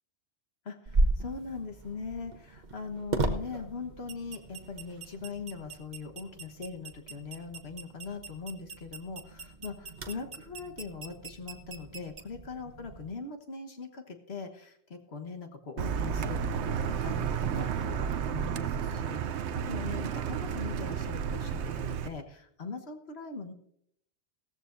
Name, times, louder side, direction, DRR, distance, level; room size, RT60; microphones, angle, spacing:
voice 1, 0.6-23.5, left 4 dB, 65° left, 4 dB, 1.6 m, -41 dB
sound 1, 0.9-13.1, right 2 dB, 45° right, 1.0 m, -36 dB
Car, 15.8-22.1, right 7 dB, 80° right, 0.9 m, -32 dB
16.5 x 14.0 x 2.6 m, 0.70 s
omnidirectional pair, 1.2 m